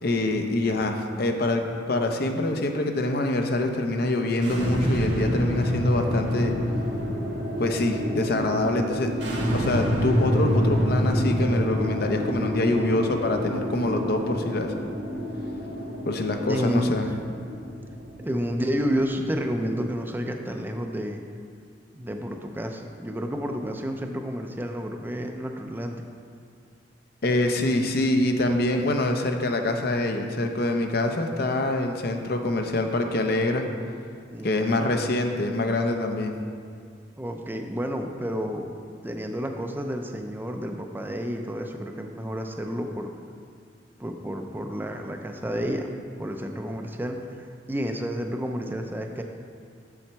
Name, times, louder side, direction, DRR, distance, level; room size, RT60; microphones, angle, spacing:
voice 1, 0.0-6.5 7.6-9.1 9.5-14.7 16.1-17.1 27.2-33.7 34.4-36.3, left 2 dB, 55° left, 4 dB, 0.7 m, -25 dB
sound 1, 4.4-19.6, equal, 80° right, 1.4 m, -27 dB
voice 2, 12.7-13.0 16.5-17.2 18.2-21.2 21.9-26.0 34.3-34.8 37.2-38.7 39.0-43.1 44.0-45.9 46.2-49.2, equal, 10° right, 4 dB, 0.5 m, -30 dB
7.3 x 7.0 x 4.5 m, 2.2 s
head